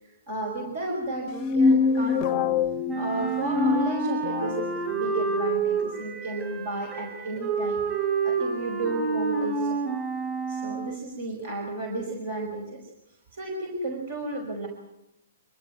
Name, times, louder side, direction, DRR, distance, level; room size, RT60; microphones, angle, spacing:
voice 1, 0.3-2.5 2.9-7.8 8.2-9.8 10.5-12.8 13.3-14.7, right 2 dB, 55° right, 1 dB, 5.5 m, -33 dB
sound 1, 1.3-4.7, left 5 dB, 30° left, 0.7 m, -24 dB
Wind instrument woodwind instrument, 2.9-11.0, right 4 dB, 15° right, 5.9 m, -28 dB
24.5 x 13.0 x 9.5 m, 0.91 s
hypercardioid pair, 130°, 0 cm